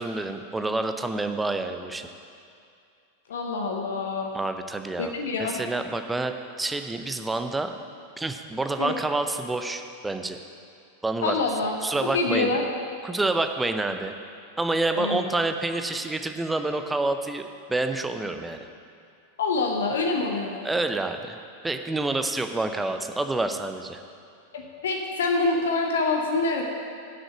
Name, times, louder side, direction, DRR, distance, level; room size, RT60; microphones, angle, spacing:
voice 1, 0.0-2.1 4.3-5.1 5.4-6.3 6.6-7.7 8.2-10.4 11.0-11.4 11.8-12.5 13.0-14.1 14.6-18.7 20.6-24.0, right 2 dB, 10° right, 7 dB, 0.6 m, -28 dB
voice 2, 3.3-4.3 5.0-5.6 8.8-8.9 11.2-11.8 12.1-12.6 15.0-15.3 19.4-20.7 24.5-26.6, left 3 dB, 60° left, 2 dB, 0.8 m, -26 dB
8.0 x 6.4 x 7.7 m, 2.4 s
figure-of-eight pair, 90°, 0 cm